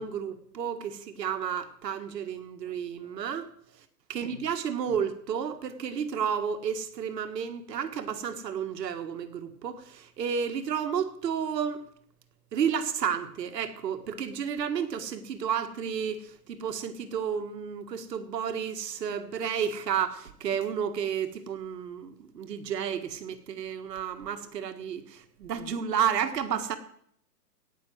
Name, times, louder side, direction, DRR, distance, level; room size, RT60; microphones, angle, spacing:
voice 1, 0.0-3.5 4.1-11.8 12.5-26.8, right 7 dB, 75° right, 9 dB, 1.8 m, -31 dB
17.0 x 6.0 x 7.9 m, 0.66 s
hypercardioid pair, 150°, 50 cm